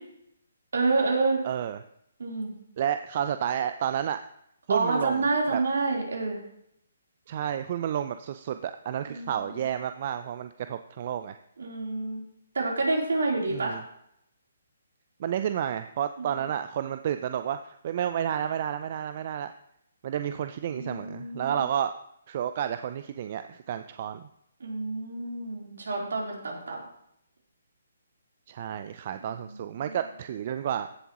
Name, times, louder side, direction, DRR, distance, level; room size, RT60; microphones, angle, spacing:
voice 1, 0.7-1.4 2.2-2.5 4.7-6.4 9.1-9.7 11.6-12.2 12.5-13.8 16.2-16.3 20.7-21.6 24.6-26.8 29.2-30.0, right 3 dB, 70° right, -2 dB, 3.6 m, -28 dB
voice 2, 1.4-1.8 2.8-4.2 4.7-5.3 5.5-5.6 7.3-11.4 13.5-13.8 15.2-19.5 20.0-21.9 22.3-24.3 28.5-30.9, right 9 dB, 45° right, 10 dB, 0.5 m, -31 dB
15.5 x 7.2 x 3.0 m, 0.74 s
figure-of-eight pair, 145°, 0 cm